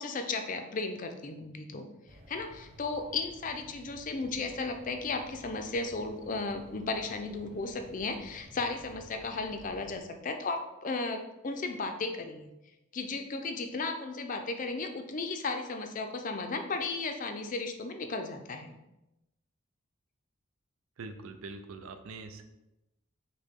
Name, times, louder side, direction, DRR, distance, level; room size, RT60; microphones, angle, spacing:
voice 1, 0.0-1.9 2.3-12.5 12.9-18.8, left 3 dB, 35° left, 5 dB, 0.4 m, -35 dB
sound 1, 2.1-10.0, equal, 25° right, 0.7 m, -54 dB
voice 2, 21.0-22.4, right 3 dB, 70° right, 7 dB, 0.5 m, -43 dB
6.4 x 2.2 x 3.6 m, 0.94 s
head